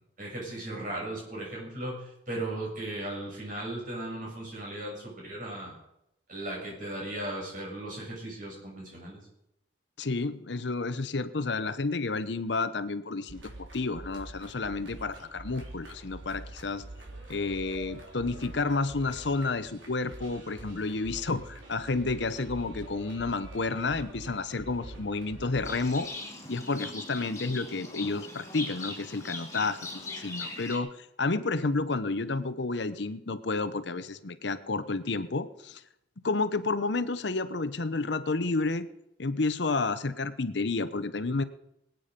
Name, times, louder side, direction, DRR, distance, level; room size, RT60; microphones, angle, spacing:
voice 1, 0.2-5.7 6.3-9.2, right 1 dB, 45° right, -3 dB, 6.9 m, -37 dB
voice 2, 10.0-16.8 17.3-26.1 26.5-35.8 36.2-38.9 39.2-41.4, left 3 dB, 65° left, 13 dB, 0.8 m, -30 dB
sound 1, 13.3-26.0, right 1 dB, 85° right, 3.7 m, -46 dB
Livestock farm animals working animals, 25.6-30.8, left 2 dB, 15° left, 2.9 m, -40 dB
21.5 x 9.3 x 5.2 m, 0.82 s
head